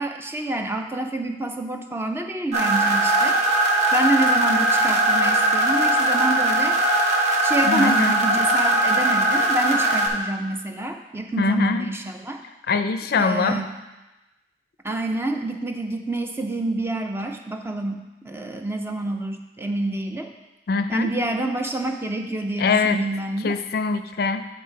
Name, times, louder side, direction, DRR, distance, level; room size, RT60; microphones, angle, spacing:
voice 1, 0.0-3.4 3.9-6.8 7.4-12.4 13.2-13.7 14.8-20.3 20.9-23.6, right 2 dB, 15° right, 4 dB, 0.4 m, -27 dB
sound 1, 2.5-10.1, right 1 dB, 40° right, 0.9 m, -20 dB
voice 2, 7.7-8.2 11.4-11.9 12.7-13.6 20.7-21.1 22.6-23.0 23.4-24.5, left 4 dB, 60° left, 9 dB, 0.4 m, -23 dB
8.3 x 4.1 x 4.6 m, 1.0 s
head